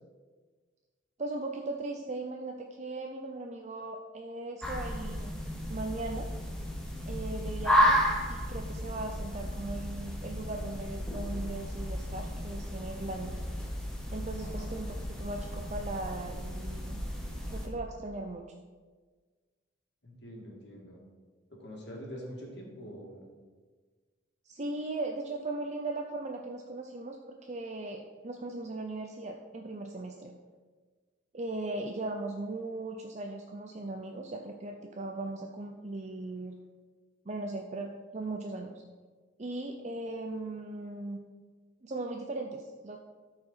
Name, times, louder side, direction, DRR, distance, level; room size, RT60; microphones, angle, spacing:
voice 1, 1.2-5.4 5.7-6.3 7.1-8.0 8.3-13.4 14.1-17.0 17.5-18.4 24.5-30.3 31.3-36.6 37.3-38.7 39.4-41.2 41.8-43.0, right 2 dB, 35° right, 2 dB, 0.5 m, -38 dB
sound 1, 4.6-17.7, equal, 5° left, 1.1 m, -33 dB
voice 2, 14.4-14.8 20.0-21.0 21.5-23.3, equal, 60° left, -2 dB, 2.4 m, -45 dB
13.0 x 4.9 x 5.6 m, 1.4 s
head